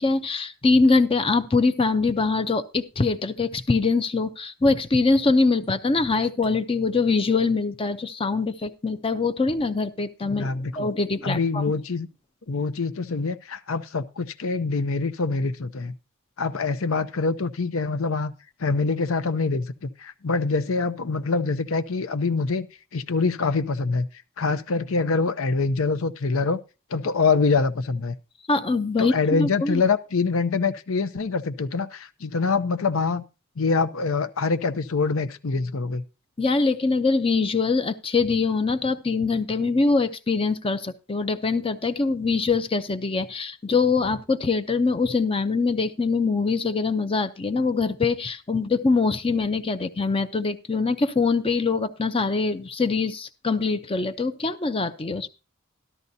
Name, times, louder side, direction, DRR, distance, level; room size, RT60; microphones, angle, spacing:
voice 1, 0.0-11.6 28.5-29.8 36.4-55.3, left 4 dB, 25° left, 0.6 m, -23 dB
voice 2, 10.2-10.9 11.2-12.1 12.5-15.9 16.4-18.3 18.6-22.7 22.9-24.1 24.4-26.6 26.9-28.1 29.0-33.2 33.6-36.0, left 4 dB, 70° left, 0.7 m, -25 dB
13.0 x 12.0 x 2.7 m
head